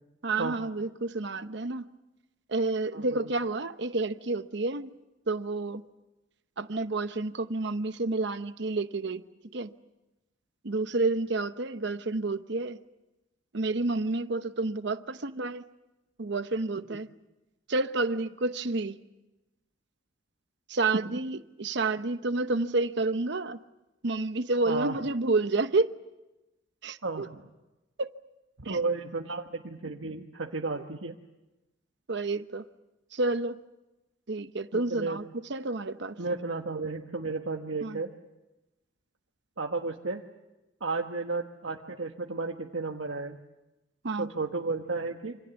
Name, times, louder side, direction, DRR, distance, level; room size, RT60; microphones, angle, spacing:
voice 1, 0.2-1.9 2.5-4.9 5.3-5.8 6.6-9.2 9.5-9.7 10.6-12.8 13.5-15.7 16.2-17.1 17.7-19.0 20.7-23.6 24.0-25.9 26.8-27.3 28.0-28.1 28.6-28.8 32.1-32.6 33.1-33.6 34.3-35.2 35.5-36.2 37.8-38.0 44.0-44.3, right 3 dB, 60° right, 0.9 m, -29 dB
voice 2, 2.9-3.3 16.9-17.0 24.6-25.0 27.0-27.4 28.6-31.2 34.7-35.2 36.2-38.1 39.6-40.2 40.8-43.4 44.2-45.4, right 3 dB, 80° right, 1.4 m, -33 dB
27.5 x 26.0 x 7.1 m
head